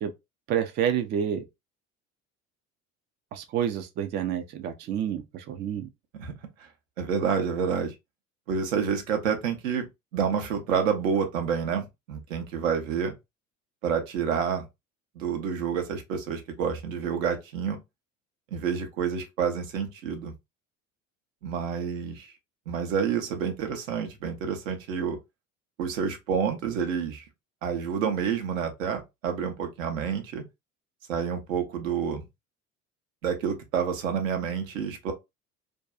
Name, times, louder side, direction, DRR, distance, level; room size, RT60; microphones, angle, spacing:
voice 1, 0.5-1.4 3.3-5.9, right 9 dB, 30° right, 0.4 m, -29 dB
voice 2, 7.0-7.9 8.5-9.9 10.1-13.1 13.8-14.7 15.2-17.8 18.5-20.3 21.4-22.3 22.7-25.2 25.8-27.2 27.6-30.4 31.1-32.2 33.2-35.1, right 7 dB, 70° right, 0.8 m, -28 dB
2.6 x 2.2 x 2.3 m
figure-of-eight pair, 60°, 41 cm